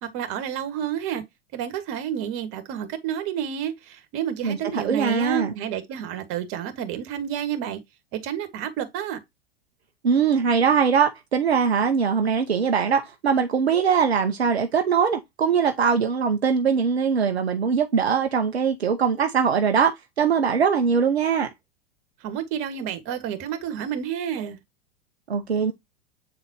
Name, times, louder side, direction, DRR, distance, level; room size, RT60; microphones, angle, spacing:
voice 1, 0.0-1.2 1.5-7.8 8.1-9.2 22.2-24.6, right 9 dB, 45° right, 1.8 m, -30 dB
voice 2, 4.4-5.5 10.0-19.9 20.2-21.5 25.3-25.7, right 6 dB, 80° right, 0.9 m, -21 dB
8.7 x 4.0 x 3.0 m
figure-of-eight pair, 90°, 31 cm